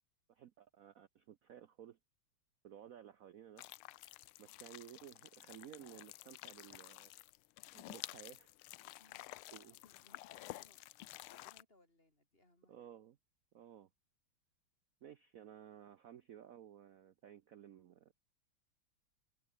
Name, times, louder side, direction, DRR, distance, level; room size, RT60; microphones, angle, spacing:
voice 1, 0.3-2.0 2.6-3.7 3.9-7.3 7.7-8.5 9.5-9.7 12.7-13.2 13.5-13.9 15.0-18.1, right 10 dB, 75° right, 0.8 m, -56 dB
sound 1, 3.6-11.6, left 18 dB, 85° left, 1.5 m, -52 dB
voice 2, 9.0-12.9, left 2 dB, 25° left, 6.2 m, -70 dB
omnidirectional pair, 2.3 m